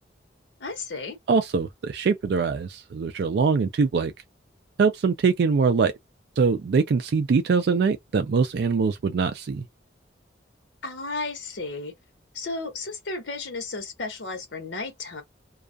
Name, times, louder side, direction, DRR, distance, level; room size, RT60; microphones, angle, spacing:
voice 1, 0.6-1.2 10.8-11.9 12.3-15.2, left 3 dB, 80° left, 0.8 m, -33 dB
voice 2, 1.3-4.1 4.8-5.9 6.4-9.6, right 5 dB, 60° right, 0.3 m, -23 dB
2.3 x 2.3 x 2.5 m
head